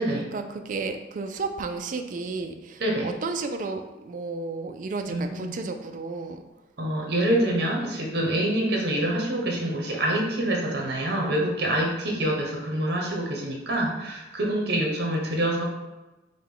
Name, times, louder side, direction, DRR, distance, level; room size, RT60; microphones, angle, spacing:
voice 1, 0.0-6.4 12.1-12.2, right 3 dB, 45° right, 6 dB, 0.3 m, -33 dB
voice 2, 2.8-3.1 5.1-5.6 6.8-15.6, right 1 dB, 60° right, -1 dB, 0.9 m, -26 dB
4.9 x 2.2 x 3.7 m, 1.1 s
head